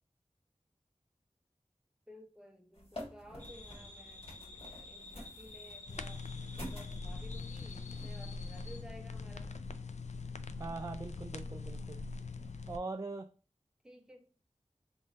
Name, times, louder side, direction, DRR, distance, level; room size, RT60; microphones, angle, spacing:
voice 1, 2.1-6.3 6.6-9.5 13.8-14.3, equal, 5° right, 0.9 m, -55 dB
sound 1, 2.7-8.2, left 1 dB, 50° left, 1.5 m, -50 dB
sound 2, 3.4-8.8, left 3 dB, 85° left, 1.1 m, -51 dB
sound 3, 5.9-12.8, left 3 dB, 70° left, 0.4 m, -42 dB
voice 2, 10.6-12.1 12.7-13.3, right 3 dB, 25° right, 0.3 m, -41 dB
3.6 x 2.6 x 4.0 m
wide cardioid pair, 45°, 12 cm